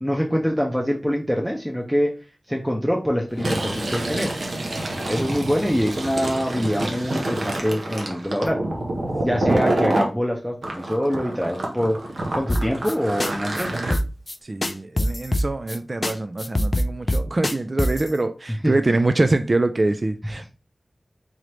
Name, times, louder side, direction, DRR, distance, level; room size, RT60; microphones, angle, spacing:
voice 1, 0.0-2.1 2.5-4.3 5.1-8.6 9.2-12.0 12.3-13.8 18.6-18.7, equal, ahead, 0.7 m, -24 dB
Fill (with liquid), 3.3-10.1 10.6-13.9, right 1 dB, 75° right, 0.9 m, -27 dB
sound 1, 12.5-12.9 13.2-13.3 13.6-13.7 13.9-14.4 14.6-15.8 16.0-16.1 16.4-18.1, left 1 dB, 40° left, 0.4 m, -23 dB
voice 2, 14.4-20.5, right 2 dB, 45° right, 0.4 m, -24 dB
3.9 x 3.1 x 3.1 m
wide cardioid pair, 55°, 0 cm